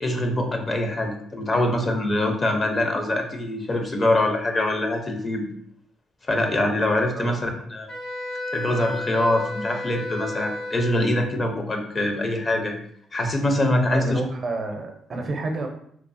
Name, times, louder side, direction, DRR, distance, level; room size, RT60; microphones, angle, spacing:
voice 1, 0.0-5.4 6.3-7.9 8.5-12.7 13.1-14.2, left 1 dB, 35° left, 4 dB, 0.5 m, -24 dB
Wind instrument woodwind instrument, 7.9-11.3, left 1 dB, 60° left, 1.3 m, -32 dB
voice 2, 13.9-15.7, right 2 dB, 45° right, 4 dB, 0.5 m, -29 dB
3.1 x 2.0 x 2.5 m, 0.66 s
cardioid pair, 90°, 0 cm